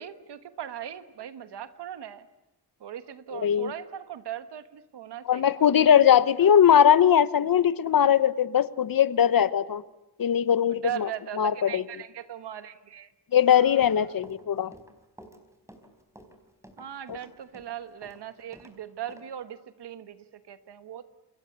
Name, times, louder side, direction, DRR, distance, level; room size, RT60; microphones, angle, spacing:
voice 1, 0.0-2.3 2.8-6.0 6.4-6.5 10.7-13.1 13.5-14.1 16.8-21.1, right 10 dB, 85° right, 11 dB, 1.4 m, -39 dB
voice 2, 3.4-3.7 5.3-9.8 10.2-11.1 11.4-11.8 13.3-14.7 17.1-17.2, left 9 dB, 60° left, 16 dB, 1.0 m, -20 dB
Run, 13.6-18.7 19.1-19.2, equal, 5° right, 4.4 m, -51 dB
29.0 x 22.0 x 8.2 m, 0.96 s
cardioid pair, 80°, 40 cm